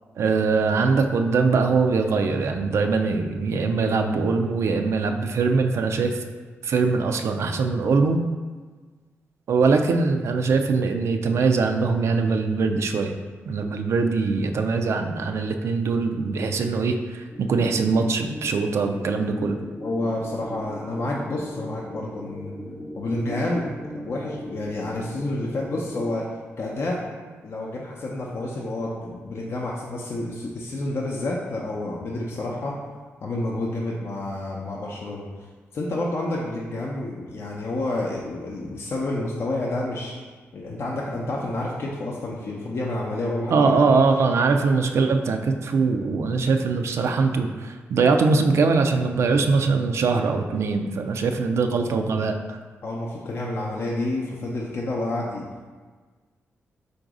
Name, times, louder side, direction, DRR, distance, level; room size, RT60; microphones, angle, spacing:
voice 1, 0.2-6.2 6.6-8.2 9.5-13.1 13.5-19.6 43.5-52.6, right 4 dB, 70° right, 5 dB, 0.3 m, -22 dB
sound 1, 17.3-26.1, left 1 dB, 15° left, 0.5 m, -38 dB
voice 2, 19.8-22.5 22.9-26.2 26.6-27.0 27.4-32.8 33.2-35.2 35.7-40.1 40.5-43.7 52.8-55.4, left 2 dB, 60° left, -3 dB, 0.6 m, -29 dB
3.9 x 2.6 x 4.7 m, 1.4 s
cardioid pair, 90°, 5 cm